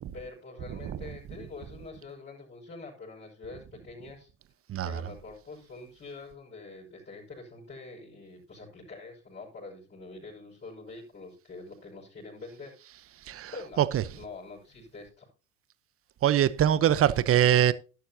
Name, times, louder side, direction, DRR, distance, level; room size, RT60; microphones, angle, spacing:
voice 1, 0.1-4.3 4.8-12.8 13.5-13.9 14.1-15.3, left 3 dB, 30° left, 6.0 m, -45 dB
voice 2, 0.7-1.0 4.7-5.0 13.2-13.5 13.8-14.0 16.2-17.7, right 10 dB, 35° right, 1.0 m, -23 dB
12.0 x 12.0 x 2.8 m
hypercardioid pair, 80°, 38 cm